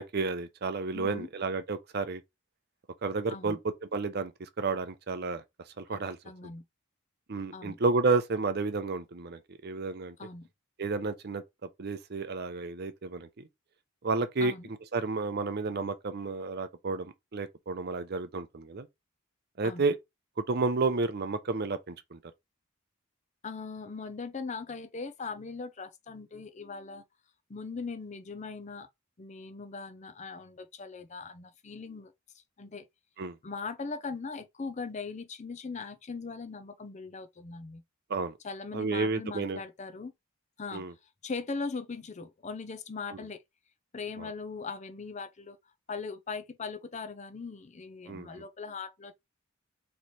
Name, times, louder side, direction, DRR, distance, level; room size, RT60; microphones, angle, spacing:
voice 1, 0.0-2.2 3.0-4.3 4.6-5.4 5.8-6.2 7.3-10.1 10.8-11.4 11.8-13.3 14.0-14.5 14.9-18.9 19.6-20.0 20.5-22.2 33.2-33.3 38.1-38.3 38.7-39.6 40.7-40.9 48.1-48.4, right 3 dB, 50° right, 0.6 m, -31 dB
voice 2, 0.9-1.3 3.3-3.6 5.9-6.6 7.5-7.8 10.2-10.5 14.4-14.7 19.6-19.9 23.4-27.0 27.5-28.9 29.2-32.1 32.6-32.9 33.4-37.8 38.4-40.1 40.6-40.8 41.2-43.4 43.9-45.6 45.9-49.1, left 4 dB, 35° left, 0.5 m, -40 dB
3.2 x 3.1 x 4.1 m
head